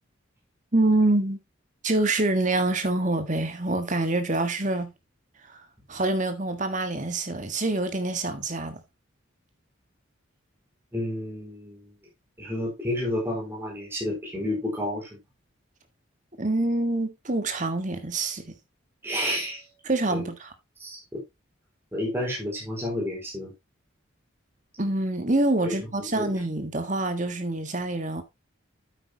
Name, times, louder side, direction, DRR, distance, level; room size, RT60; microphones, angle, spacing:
voice 1, 0.7-1.4 1.8-4.9 5.5-5.6 5.9-8.8 16.4-18.5 19.8-20.5 24.8-28.2, right 2 dB, 35° right, 1.6 m, -26 dB
voice 2, 10.9-11.9 12.4-15.1 19.0-19.6 20.1-20.3 20.8-21.2 21.9-23.5 25.6-25.7 26.1-26.3, left 1 dB, 10° right, 4.7 m, -30 dB
9.2 x 8.5 x 2.9 m
head